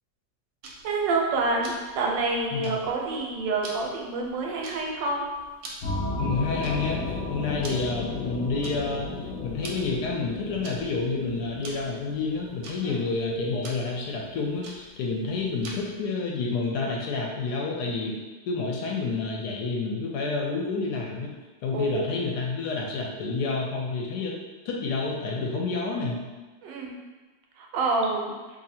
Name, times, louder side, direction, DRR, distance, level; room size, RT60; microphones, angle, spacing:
Tick-tock, 0.6-16.0, right 2 dB, 65° right, 1.0 m, -46 dB
voice 1, 0.8-5.2 12.8-13.0 21.7-22.1 26.6-26.9 27.6-28.3, right 3 dB, 85° right, 0 dB, 1.3 m, -27 dB
sound 1, 5.8-14.1, left 3 dB, 55° left, 0.8 m, -34 dB
voice 2, 6.2-18.2 18.5-21.3 21.6-24.4 24.6-26.2, left 3 dB, 75° left, -1 dB, 1.0 m, -29 dB
2.7 x 2.7 x 4.1 m, 1.3 s
omnidirectional pair, 1.9 m